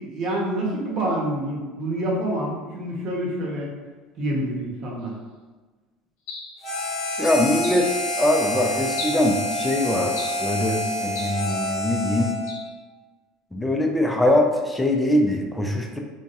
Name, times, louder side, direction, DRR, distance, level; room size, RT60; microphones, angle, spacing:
voice 1, 0.0-3.7 4.2-5.1, right 1 dB, 55° right, -2 dB, 0.9 m, -27 dB
sound 1, 6.3-6.6 7.6-7.9 9.0-9.3 10.1-10.5 11.1-11.4 12.5-12.7, left 3 dB, 70° left, 0.8 m, -35 dB
Harmonica, 6.6-12.6, left 1 dB, 35° left, 1.0 m, -28 dB
voice 2, 7.2-7.9 8.2-10.1 10.4-12.3 13.5-16.0, left 1 dB, 5° left, 2 dB, 0.5 m, -22 dB
3.8 x 2.3 x 2.4 m, 1.3 s
hypercardioid pair, 80°, 0 cm